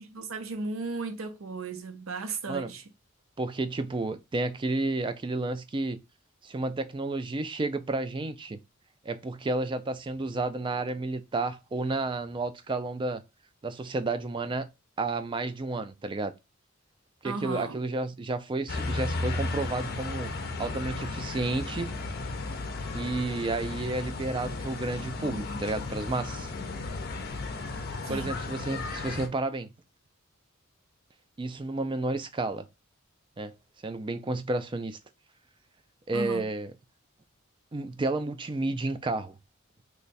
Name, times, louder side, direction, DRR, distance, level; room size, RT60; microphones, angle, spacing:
voice 1, 0.0-2.8 17.2-17.8 28.1-28.3 36.1-36.4, right 3 dB, 70° right, 0.6 m, -35 dB
voice 2, 3.4-6.0 6.4-8.6 9.0-13.2 13.6-14.7 15.0-16.3 17.2-20.3 20.6-21.9 22.9-26.5 28.1-29.7 31.4-32.7 33.4-33.5 33.8-35.0 36.1-36.7 37.7-39.4, right 2 dB, 25° right, 0.3 m, -31 dB
sound 1, 18.7-29.3, left 3 dB, 45° left, 0.5 m, -34 dB
3.1 x 2.3 x 4.0 m
head